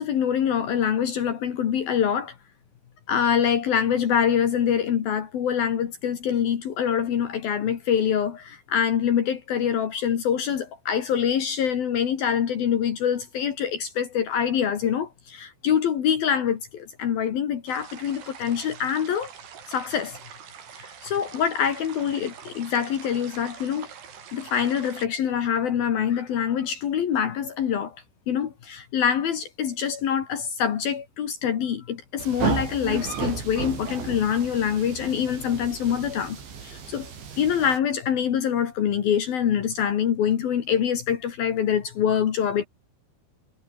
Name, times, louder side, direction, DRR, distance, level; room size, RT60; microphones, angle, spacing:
voice 1, 0.0-2.4 3.1-19.3 19.7-20.2 20.8-23.9 24.3-28.0 28.3-37.1 37.4-42.7, left 8 dB, 60° left, 3.7 m, -25 dB
sound 1, 17.7-25.1, right 8 dB, 65° right, 5.5 m, -44 dB
sound 2, 32.2-37.8, right 6 dB, 90° right, 7.5 m, -33 dB
omnidirectional pair, 5.1 m